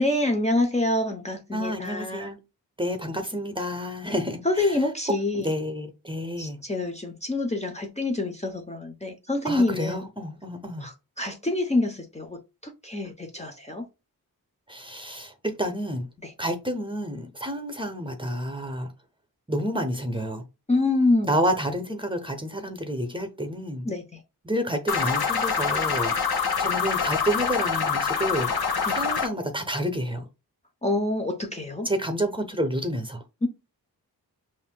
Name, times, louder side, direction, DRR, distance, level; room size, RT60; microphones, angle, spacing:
voice 1, 0.0-2.3 4.0-4.1 4.4-5.5 6.4-10.0 10.8-13.9 16.2-16.3 20.7-21.4 23.8-24.0 28.9-29.0 30.8-31.9 33.4-33.5, left 2 dB, 20° left, 0.7 m, -26 dB
voice 2, 1.5-2.4 2.8-4.8 5.3-6.6 9.4-10.8 14.7-16.1 16.4-18.9 19.5-20.4 21.3-23.9 24.4-28.5 28.9-30.2 31.8-33.2, equal, 15° right, 0.8 m, -29 dB
sound 1, 24.9-29.3, left 6 dB, 75° left, 0.9 m, -25 dB
5.5 x 2.6 x 2.2 m
wide cardioid pair, 70°, 38 cm